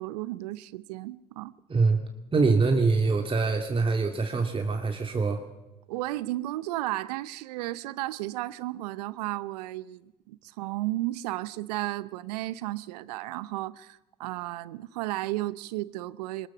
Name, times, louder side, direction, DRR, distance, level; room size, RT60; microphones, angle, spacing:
voice 1, 0.0-1.5 5.9-16.5, right 17 dB, 80° right, 0.8 m, -34 dB
voice 2, 2.3-5.4, right 4 dB, 25° right, 2.3 m, -24 dB
22.5 x 19.5 x 7.2 m
hypercardioid pair, 65°, 20 cm